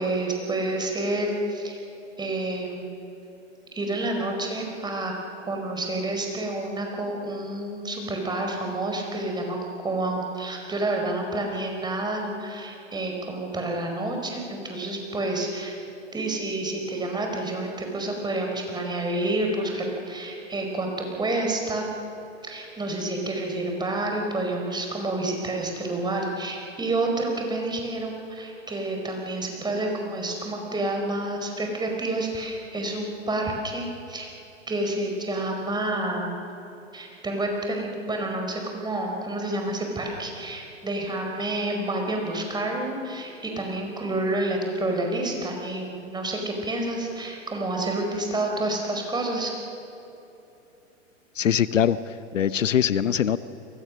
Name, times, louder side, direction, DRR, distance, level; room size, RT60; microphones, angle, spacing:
voice 1, 0.0-1.8 2.2-2.9 3.7-5.1 5.5-9.6 9.8-15.8 16.1-21.9 22.4-34.3 34.7-36.4 36.9-49.5, right 2 dB, 10° right, 2 dB, 4.8 m, -29 dB
voice 2, 51.4-53.4, left 9 dB, 75° left, 15 dB, 0.9 m, -23 dB
30.0 x 23.5 x 6.4 m, 2.9 s
figure-of-eight pair, 105°, 38 cm